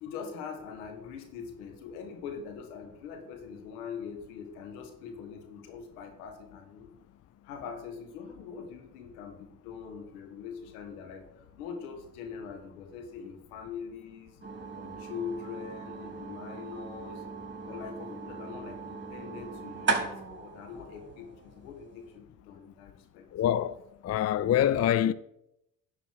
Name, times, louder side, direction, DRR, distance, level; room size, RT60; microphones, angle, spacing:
voice 1, 0.0-6.9 7.4-14.4 14.8-17.2 17.6-23.3, left 6 dB, 85° left, 1.7 m, -42 dB
sound 1, 14.4-22.2, right 4 dB, 25° right, 3.4 m, -37 dB
voice 2, 23.3-23.8 24.0-25.1, left 10 dB, 35° left, 0.5 m, -25 dB
11.0 x 6.8 x 4.8 m
hypercardioid pair, 50°, 43 cm